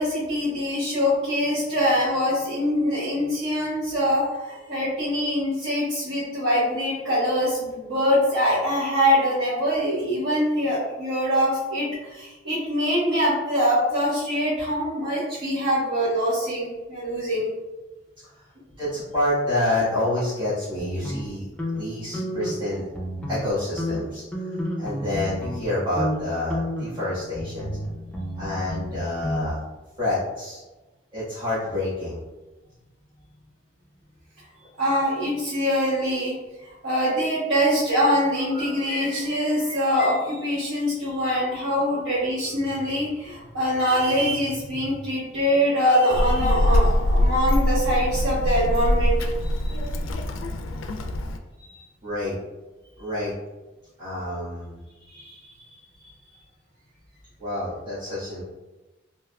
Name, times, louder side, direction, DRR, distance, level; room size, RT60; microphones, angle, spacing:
voice 1, 0.0-17.5 34.8-36.4 36.7-49.3 51.6-51.7 55.1-55.4, equal, 75° right, -12 dB, 1.3 m, -24 dB
voice 2, 18.8-22.9 23.3-24.2 24.8-27.7 28.4-29.6 30.0-30.6 31.1-32.2 52.0-52.4 53.0-53.3 54.0-54.8 57.4-58.4, left 1 dB, 30° right, -15 dB, 1.4 m, -28 dB
sound 1, 20.8-22.6 22.9-23.5 23.8-25.7 26.0-26.2 26.5-29.5, equal, 5° left, 0.5 m, -31 dB
Child speech kid speaking, 46.1-51.4, left 1 dB, 75° left, 0.3 m, -23 dB
3.4 x 2.8 x 2.3 m, 1.1 s
head